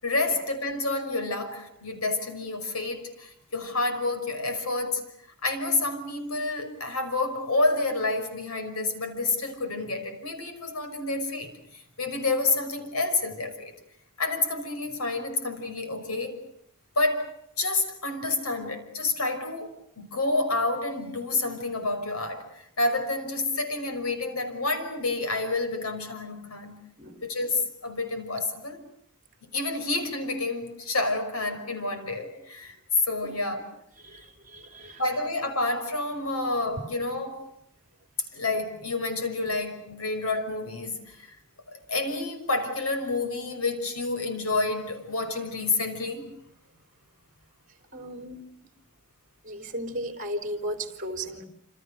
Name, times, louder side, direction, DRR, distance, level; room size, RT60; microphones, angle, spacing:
voice 1, 0.0-5.0 5.4-13.7 14.2-16.4 17.0-17.3 17.6-26.8 27.2-28.8 29.4-32.8 33.0-33.7 35.0-37.4 38.3-41.3 41.7-46.3, left 2 dB, 75° left, 5.8 m, -29 dB
voice 2, 34.0-35.0 47.9-48.4 49.4-51.5, equal, 40° right, 3.7 m, -35 dB
28.0 x 28.0 x 6.6 m
head